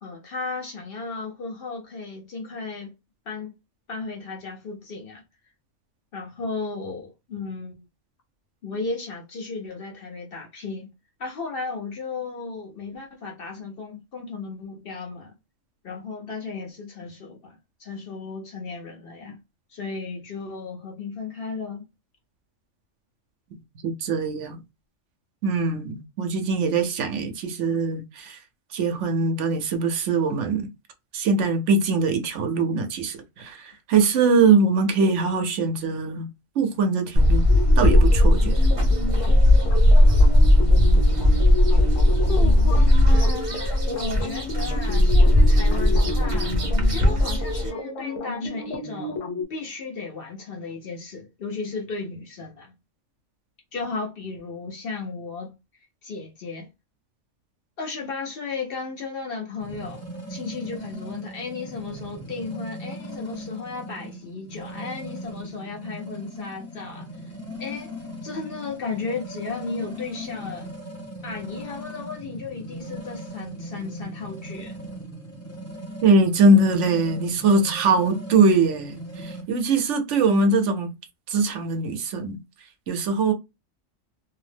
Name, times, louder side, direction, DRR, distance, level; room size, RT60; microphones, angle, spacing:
voice 1, 0.0-2.9 3.3-3.5 3.9-5.2 6.1-7.8 8.6-10.9 11.2-15.4 15.8-19.4 19.7-21.9 42.3-46.5 46.9-49.2 49.5-52.7 53.7-55.6 56.0-56.7 57.8-60.0 60.3-67.1 67.6-67.9 68.2-70.7 71.2-74.8, left 4 dB, 55° left, 0.7 m, -34 dB
voice 2, 23.8-24.6 25.4-28.4 28.7-30.7 31.1-36.3 36.6-37.4 37.8-38.6 76.0-80.9 81.3-82.4 82.9-83.3, right 3 dB, 70° right, 0.9 m, -22 dB
sound 1, 37.2-47.7, left 1 dB, 30° right, 0.7 m, -17 dB
sound 2, 37.5-49.4, left 2 dB, 75° left, 1.0 m, -32 dB
sound 3, 59.6-79.4, equal, 15° left, 0.7 m, -38 dB
2.7 x 2.0 x 3.2 m
omnidirectional pair, 1.3 m